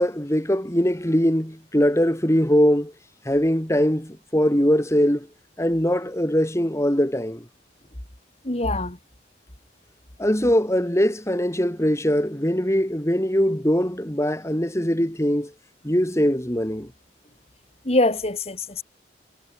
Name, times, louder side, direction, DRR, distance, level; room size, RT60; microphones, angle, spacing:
voice 1, 0.0-2.9 3.2-5.3 5.6-7.4 10.2-15.5 15.8-16.9, equal, 15° left, 3.0 m, -21 dB
voice 2, 8.4-9.0 17.9-18.8, left 2 dB, 35° left, 2.4 m, -23 dB
head